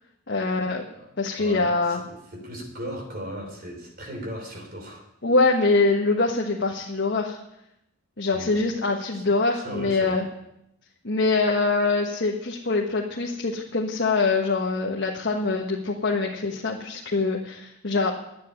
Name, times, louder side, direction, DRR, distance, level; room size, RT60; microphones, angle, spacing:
voice 1, 0.3-0.8 1.2-2.0 5.2-7.4 8.2-10.2 11.0-18.1, left 3 dB, 60° left, -1 dB, 1.4 m, -24 dB
voice 2, 1.4-5.1 8.3-8.6 9.1-9.2 9.5-10.3, equal, 50° right, 3 dB, 3.2 m, -37 dB
10.5 x 9.0 x 9.8 m, 0.82 s
head